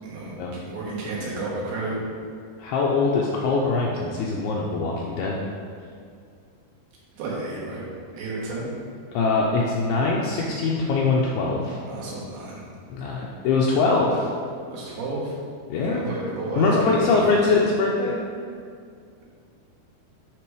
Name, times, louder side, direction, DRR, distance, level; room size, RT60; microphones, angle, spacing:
voice 1, 0.0-2.0 7.1-7.8 8.1-8.7 11.9-12.7 14.7-15.3 15.9-17.6, right 2 dB, 70° right, -6 dB, 3.1 m, -31 dB
voice 2, 2.6-5.4 9.1-11.8 12.9-14.3 15.7-16.1 16.6-18.3, left 3 dB, 85° left, -3 dB, 2.3 m, -22 dB
9.1 x 3.4 x 4.7 m, 2.2 s
omnidirectional pair, 5.0 m